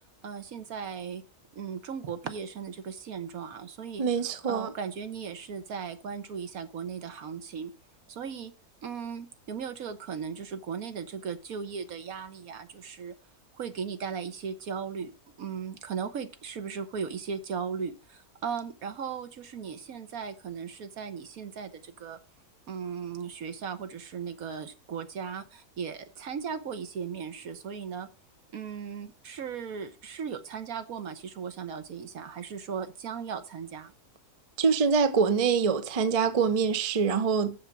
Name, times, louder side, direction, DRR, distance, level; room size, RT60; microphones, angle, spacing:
voice 1, 0.2-1.2 1.5-4.0 4.5-7.7 8.1-8.5 8.8-13.1 13.5-15.1 15.4-22.2 22.7-28.1 28.5-33.9, right 6 dB, 65° right, 1.4 m, -37 dB
voice 2, 4.0-4.7 34.6-37.7, right 5 dB, 35° right, 0.6 m, -25 dB
7.3 x 6.9 x 5.9 m
omnidirectional pair, 1.7 m